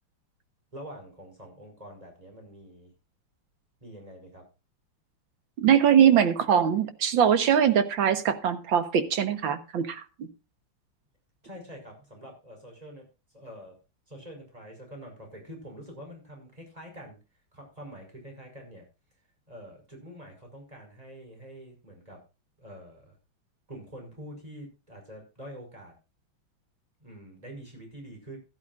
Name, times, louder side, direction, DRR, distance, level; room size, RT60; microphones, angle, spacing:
voice 1, 0.7-2.9 3.8-4.5 11.4-13.1 13.3-13.8 14.1-17.2 17.5-18.9 19.5-22.2 22.6-23.2 23.7-25.9 27.0-28.4, equal, 15° right, 2 dB, 5.8 m, -45 dB
voice 2, 5.6-10.3, right 8 dB, 70° right, 10 dB, 2.1 m, -22 dB
16.0 x 12.5 x 2.5 m, 0.29 s
omnidirectional pair, 2.2 m